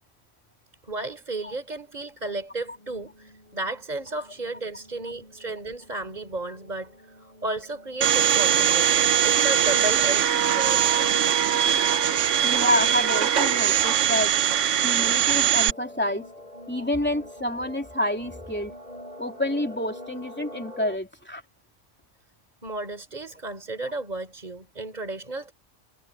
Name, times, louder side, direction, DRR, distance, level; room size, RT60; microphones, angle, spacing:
voice 1, 0.8-6.9 7.4-10.8 22.6-25.5, right 2 dB, 35° right, 3.8 m, -33 dB
sound 1, 2.7-21.0, left 1 dB, 30° left, 6.4 m, -46 dB
Domestic sounds home sounds, 8.0-15.7, right 9 dB, 80° right, 1.2 m, -21 dB
voice 2, 12.4-14.3 14.8-16.3 16.7-18.7 19.2-21.4, left 1 dB, 10° left, 3.0 m, -28 dB
omnidirectional pair, 1.3 m